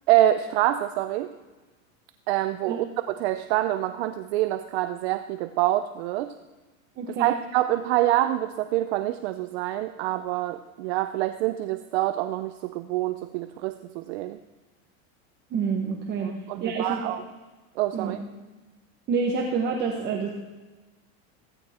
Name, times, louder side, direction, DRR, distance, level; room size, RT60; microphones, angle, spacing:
voice 1, 0.1-1.3 2.3-6.3 7.2-14.4 16.2-17.2 17.8-18.2, right 14 dB, 50° right, 10 dB, 0.6 m, -26 dB
voice 2, 7.0-7.3 15.5-16.3 16.6-17.1 17.9-18.2 19.1-20.3, right 5 dB, 25° right, 1 dB, 1.2 m, -27 dB
16.0 x 15.5 x 4.3 m, 1.2 s
supercardioid pair, 165°, 41 cm